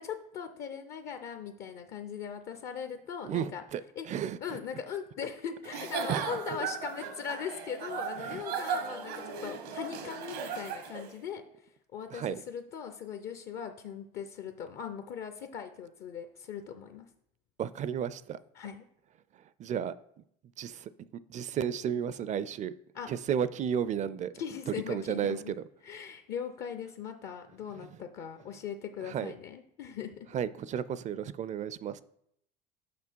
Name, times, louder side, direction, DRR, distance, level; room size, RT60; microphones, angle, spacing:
voice 1, 0.0-3.6 4.0-4.1 4.4-11.4 11.9-17.1 18.6-18.8 22.9-23.1 24.3-25.5 25.8-30.3, left 7 dB, 55° left, 0.7 m, -40 dB
voice 2, 3.2-4.6 6.1-6.3 8.2-8.4 12.1-12.4 17.6-18.4 19.6-19.9 20.6-20.9 21.3-22.7 23.1-24.3 24.9-25.6 27.8-27.9 29.0-29.3 30.3-32.0, right 8 dB, 40° right, 0.4 m, -33 dB
Giggle / Chuckle chortle, 5.6-11.1, right 6 dB, 85° right, 1.1 m, -36 dB
6.0 x 5.6 x 4.5 m
supercardioid pair, 85°, 19 cm